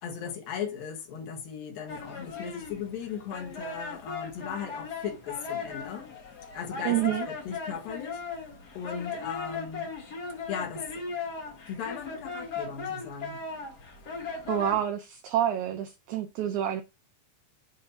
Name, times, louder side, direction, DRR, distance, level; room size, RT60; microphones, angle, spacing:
voice 1, 0.0-6.1 6.5-8.5 8.7-9.9 10.5-11.0 11.7-13.4, left 7 dB, 85° left, 3.4 m, -37 dB
sound 1, 1.9-14.8, left 4 dB, 50° left, 1.1 m, -38 dB
voice 2, 6.9-7.3 14.5-16.8, right 11 dB, 75° right, 1.8 m, -28 dB
7.7 x 2.9 x 5.3 m
omnidirectional pair, 4.0 m